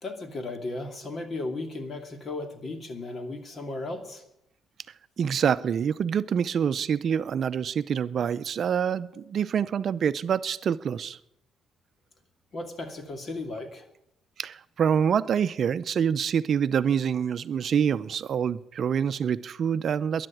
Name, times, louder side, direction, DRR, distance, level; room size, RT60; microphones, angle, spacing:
voice 1, 0.0-4.2 12.5-13.9, left 2 dB, 45° left, 2.6 m, -35 dB
voice 2, 5.2-11.2 14.4-20.3, right 7 dB, 55° right, 0.5 m, -26 dB
12.5 x 11.0 x 9.1 m
cardioid pair, 90°, 0 cm